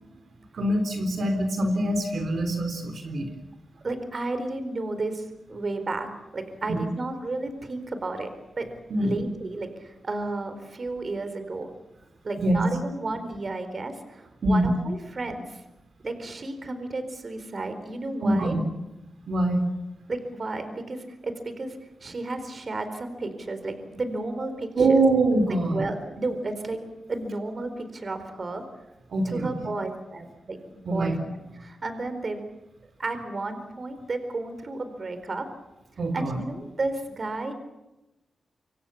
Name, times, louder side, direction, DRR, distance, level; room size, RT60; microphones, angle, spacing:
voice 1, 0.5-3.3 6.7-6.8 8.9-9.2 12.4-12.6 14.4-14.7 18.2-18.6 19.3-19.7 24.8-25.8 29.1-29.5 30.9-31.2 36.0-36.4, right 2 dB, 65° right, 6 dB, 4.0 m, -24 dB
voice 2, 3.8-5.2 5.5-8.3 8.6-8.7 9.0-11.7 12.2-15.6 16.0-18.6 20.1-25.0 25.7-26.8 27.1-28.6 29.2-31.1 31.5-32.5 33.0-35.5 36.1-37.5, right 2 dB, 45° right, 9 dB, 4.3 m, -32 dB
27.5 x 24.5 x 7.2 m, 0.99 s
cardioid pair, 90°, 0 cm